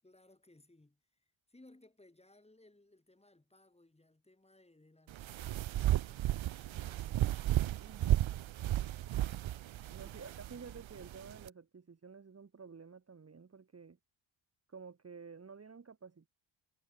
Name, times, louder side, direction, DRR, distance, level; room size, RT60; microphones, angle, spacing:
voice 1, 0.0-7.3 9.9-10.3, left 2 dB, 10° left, 7.8 m, -64 dB
sound 1, 5.1-11.5, right 13 dB, 65° right, 0.7 m, -34 dB
voice 2, 7.7-8.3 9.9-14.0 14.7-16.3, right 5 dB, 30° right, 1.8 m, -51 dB
wide cardioid pair, 140°, 50 cm